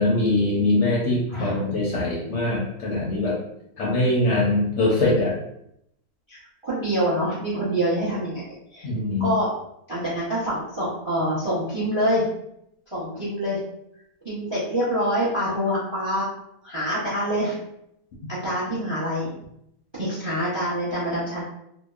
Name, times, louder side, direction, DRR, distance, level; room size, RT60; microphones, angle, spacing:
voice 1, 0.0-3.4 3.8-5.3 8.8-9.3, left 2 dB, 65° left, -4 dB, 0.7 m, -22 dB
voice 2, 1.3-1.6 6.3-8.4 8.7-8.9 9.2-9.5 9.9-12.2 12.9-13.6 14.2-16.2 16.6-17.5 18.3-19.3 20.0-21.4, equal, 35° right, -8 dB, 0.4 m, -26 dB
2.8 x 2.1 x 2.3 m, 0.77 s
omnidirectional pair, 1.6 m